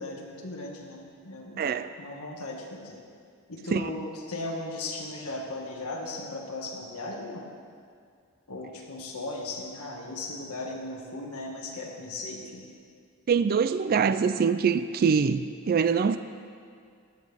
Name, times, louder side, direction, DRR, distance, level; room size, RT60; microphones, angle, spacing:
voice 1, 0.0-1.6 2.0-3.0 3.5-7.4 8.5-12.6, left 2 dB, 85° left, -1 dB, 1.7 m, -37 dB
voice 2, 1.6-1.9 3.7-3.9 13.3-16.2, right 6 dB, 45° right, 11 dB, 0.3 m, -24 dB
15.5 x 10.5 x 3.5 m, 2.2 s
head